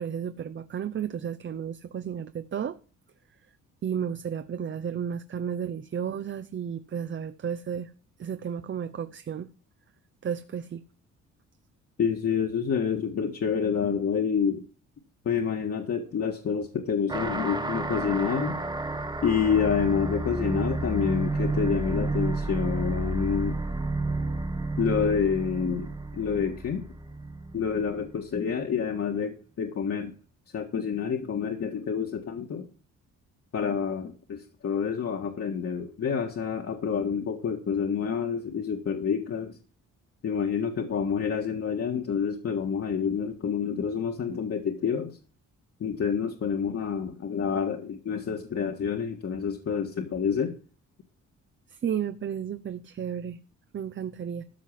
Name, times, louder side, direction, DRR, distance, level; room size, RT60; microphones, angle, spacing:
voice 1, 0.0-2.8 3.8-7.9 8.2-9.5 10.2-10.8 51.7-53.4 53.7-54.4, right 8 dB, 40° right, 0.7 m, -33 dB
voice 2, 12.0-14.6 15.2-18.6 19.2-23.6 24.8-26.9 27.5-30.1 30.5-32.7 33.5-39.6 40.2-45.2 45.8-50.6, left 6 dB, 55° left, 1.8 m, -28 dB
sound 1, 17.1-28.1, right 2 dB, 15° right, 1.6 m, -31 dB
13.5 x 4.7 x 7.5 m
cardioid pair, 90°, 30 cm